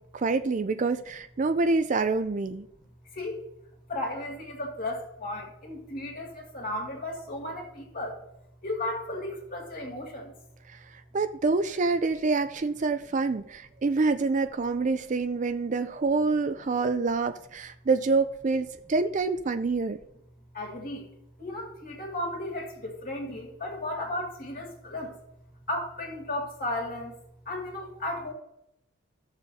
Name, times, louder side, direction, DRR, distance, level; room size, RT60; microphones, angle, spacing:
voice 1, 0.1-2.7 10.7-10.8 11.1-20.0, right 3 dB, 35° right, 10 dB, 0.4 m, -26 dB
voice 2, 3.9-8.1 8.6-10.3 20.5-21.1 21.4-25.1 25.7-27.1 27.5-28.3, left 1 dB, 40° left, 1 dB, 2.3 m, -34 dB
16.0 x 7.0 x 2.8 m, 0.80 s
head